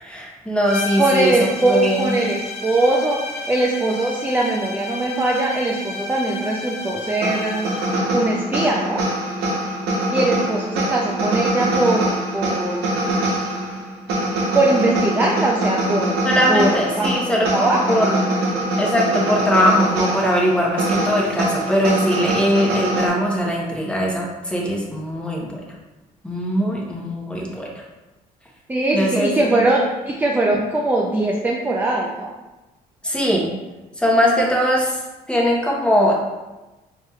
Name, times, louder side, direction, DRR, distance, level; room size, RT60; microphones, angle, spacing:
voice 1, 0.0-1.3 1.6-2.1 16.2-18.3 18.8-25.6 26.2-27.7 28.9-29.7 33.0-33.5 34.0-35.0 35.3-36.1, equal, 5° left, -3 dB, 0.8 m, -20 dB
sound 1, 0.6-8.1, left 2 dB, 40° left, 0.7 m, -32 dB
voice 2, 1.0-7.7 8.1-9.0 10.1-12.9 14.5-16.1 16.5-16.7 17.0-17.1 17.5-18.0 28.7-32.3, right 2 dB, 10° right, -1 dB, 0.4 m, -21 dB
sound 2, 7.2-23.1, right 1 dB, 90° right, 0.9 m, -23 dB
4.5 x 2.9 x 2.3 m, 1.1 s
cardioid pair, 110°, 16 cm